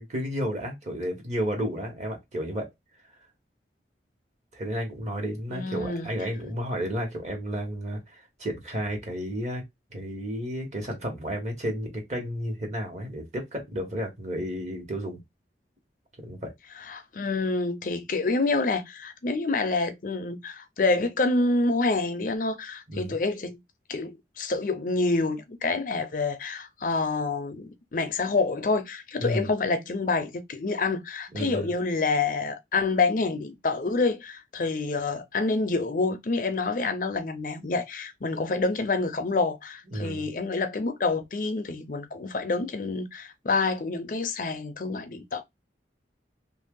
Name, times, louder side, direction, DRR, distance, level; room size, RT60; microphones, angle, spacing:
voice 1, 0.0-2.7 4.5-9.6 9.9-15.2 16.2-16.5 22.9-23.1 29.2-29.5 31.3-31.7 39.9-40.3, equal, 40° right, 1.3 m, -32 dB
voice 2, 5.5-6.1 16.8-23.6 23.9-45.4, left 3 dB, 50° left, 0.5 m, -27 dB
2.9 x 2.6 x 3.7 m
head